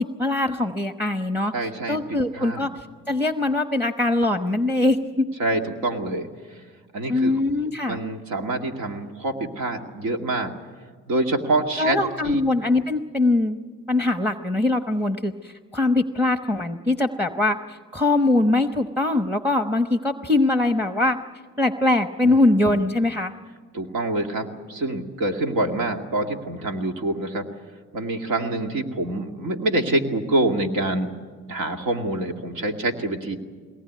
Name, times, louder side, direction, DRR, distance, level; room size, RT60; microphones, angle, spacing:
voice 1, 0.0-5.3 7.1-8.0 11.8-13.6 13.9-21.2 21.6-23.3, left 2 dB, 5° right, 7 dB, 1.0 m, -22 dB
voice 2, 1.5-2.7 5.4-6.3 6.9-7.3 7.9-10.5 11.1-12.0 12.2-12.4 22.2-22.4 22.7-22.8 23.7-27.4 27.9-31.1 31.5-33.4, right 2 dB, 80° right, 4 dB, 2.4 m, -26 dB
22.0 x 19.0 x 9.4 m, 1.5 s
cardioid pair, 90°, 30 cm